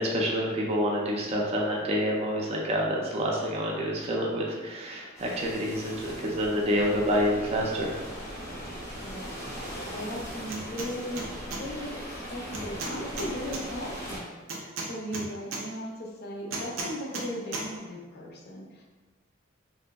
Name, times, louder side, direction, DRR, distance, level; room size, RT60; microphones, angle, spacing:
voice 1, 0.0-7.9, equal, 30° right, -2 dB, 0.4 m, -28 dB
sound 1, 5.2-14.2, equal, 15° left, 0.6 m, -39 dB
voice 2, 6.7-7.0 9.0-11.2 11.6-14.3 14.8-18.8, equal, 55° left, -1 dB, 0.5 m, -37 dB
sound 2, 10.5-10.9 11.2-11.6 12.5-13.6 14.5-15.6 16.5-17.3 17.5-17.7, right 3 dB, 85° right, 0.5 m, -34 dB
2.9 x 2.6 x 2.2 m, 1.3 s
head